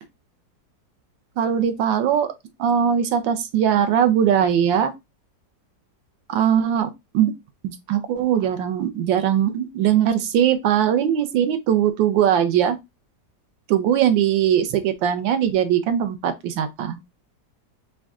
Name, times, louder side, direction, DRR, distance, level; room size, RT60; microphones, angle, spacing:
voice 1, 1.4-2.3 2.6-4.9 6.3-7.3 7.6-12.8 13.7-17.0, right 9 dB, 90° right, 1.4 m, -20 dB
5.0 x 2.3 x 3.5 m
omnidirectional pair, 2.0 m